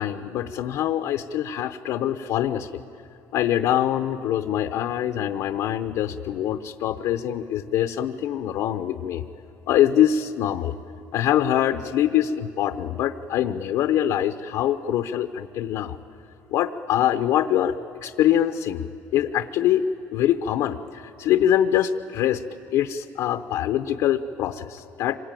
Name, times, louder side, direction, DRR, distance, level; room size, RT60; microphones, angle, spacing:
voice 1, 0.0-2.7 3.3-9.2 9.7-10.7 11.1-16.0 16.5-17.8 18.0-18.9 19.1-19.8 20.1-22.4 22.7-25.2, left 11 dB, 70° left, 8 dB, 0.8 m, -24 dB
26.0 x 22.5 x 9.1 m, 2.8 s
cardioid pair, 125°, 6 cm